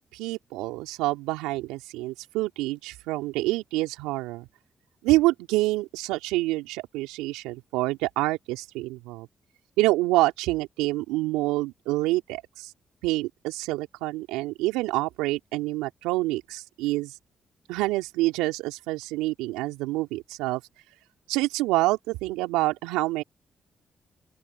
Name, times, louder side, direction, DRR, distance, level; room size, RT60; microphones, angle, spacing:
voice 1, 0.1-4.5 5.0-9.3 9.8-12.7 13.0-17.1 17.7-20.6 21.3-23.2, right 19 dB, 85° right, 2.9 m, -27 dB
open air
hypercardioid pair, 40°, 0 cm